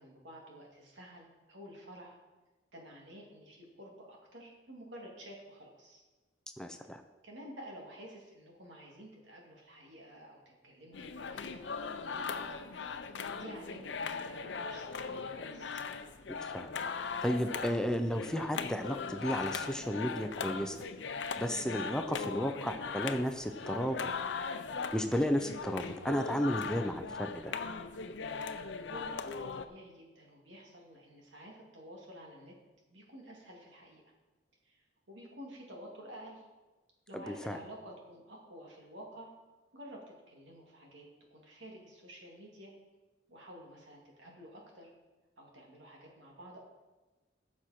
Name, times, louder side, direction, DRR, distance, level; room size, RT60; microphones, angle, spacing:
voice 1, 0.0-2.2 2.7-6.0 7.2-11.6 12.1-12.7 13.3-15.8 28.8-32.5 32.9-34.0 34.6-36.4 37.1-39.3 39.7-42.7 43.3-44.9 45.4-46.6, equal, 90° right, -1 dB, 2.5 m, -51 dB
voice 2, 6.6-7.0 16.3-16.7 17.2-20.8 21.4-24.1 24.9-27.5 37.1-37.6, equal, 5° left, 7 dB, 0.5 m, -33 dB
sound 1, 10.9-29.7, left 5 dB, 75° left, 0.6 m, -39 dB
15.0 x 6.2 x 4.3 m, 1.2 s
head